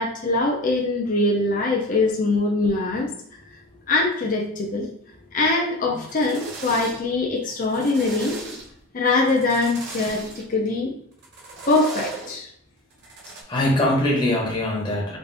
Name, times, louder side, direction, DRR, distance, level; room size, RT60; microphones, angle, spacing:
voice 1, 0.0-3.1 3.9-4.9 5.3-8.3 8.9-10.9 11.7-12.5, left 2 dB, 40° left, -1 dB, 0.6 m, -22 dB
sound 1, 5.9-7.2 7.5-8.9 9.3-10.4 11.2-12.4 12.9-13.4, right 3 dB, 55° right, 0.9 m, -36 dB
voice 2, 13.5-15.2, left 1 dB, 20° left, -3 dB, 0.9 m, -22 dB
4.0 x 2.6 x 3.4 m, 0.68 s
head